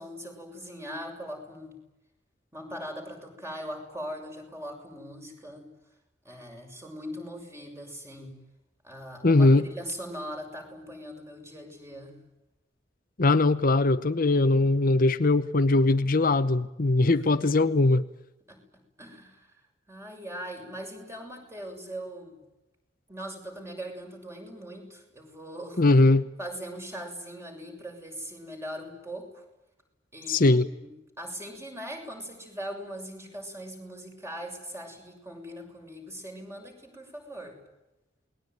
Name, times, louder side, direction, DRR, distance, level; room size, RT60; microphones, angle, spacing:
voice 1, 0.0-1.8 2.5-5.7 6.2-8.4 8.8-12.2 18.5-18.6 19.0-19.5 19.9-22.4 23.1-25.8 26.4-29.4 30.1-30.9 31.2-37.6, equal, 15° right, 3 dB, 6.9 m, -40 dB
voice 2, 9.2-9.6 13.2-18.0 25.8-26.3 30.3-30.6, left 2 dB, 50° left, 10 dB, 0.9 m, -21 dB
28.5 x 21.0 x 9.5 m, 0.96 s
head